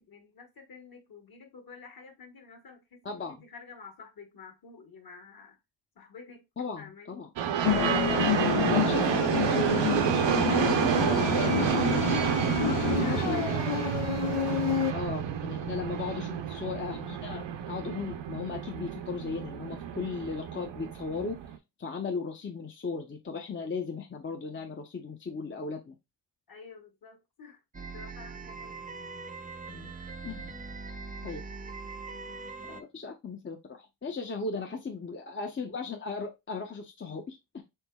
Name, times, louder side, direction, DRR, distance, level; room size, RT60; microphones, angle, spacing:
voice 1, 0.0-5.6 5.9-6.4 6.7-7.2 8.0-9.5 12.6-14.4 15.6-16.1 26.5-27.6 27.9-28.9 32.6-32.7 34.6-34.7, left 5 dB, 45° left, 1.3 m, -49 dB
voice 2, 3.0-3.4 6.6-7.3 8.6-12.0 12.8-13.4 14.9-21.4 21.8-26.0 29.7-29.9 30.2-30.5 31.2-31.4 32.6-37.6, left 4 dB, 25° left, 0.6 m, -36 dB
sound 1, 7.4-21.6, right 9 dB, 65° right, 0.7 m, -29 dB
sound 2, 7.6-14.9, left 11 dB, 80° left, 0.6 m, -29 dB
sound 3, 27.7-32.8, right 4 dB, 20° right, 0.4 m, -41 dB
4.5 x 3.8 x 2.2 m
cardioid pair, 100°, 48 cm